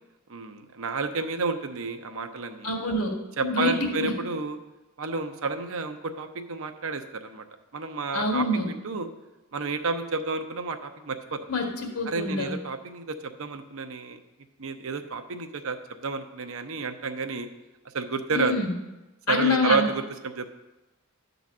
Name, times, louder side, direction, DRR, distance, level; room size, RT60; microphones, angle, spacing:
voice 1, 0.3-2.7 3.4-4.6 5.0-7.4 7.7-9.1 9.5-11.4 12.1-14.2 14.6-17.5 17.9-18.5 19.3-20.5, right 4 dB, 65° right, 7 dB, 0.8 m, -30 dB
voice 2, 2.6-3.1 3.4-4.2 8.1-8.7 11.5-12.5 18.3-18.7 19.3-19.9, left 2 dB, 90° left, 2 dB, 1.7 m, -26 dB
11.5 x 4.0 x 7.3 m, 1.0 s
head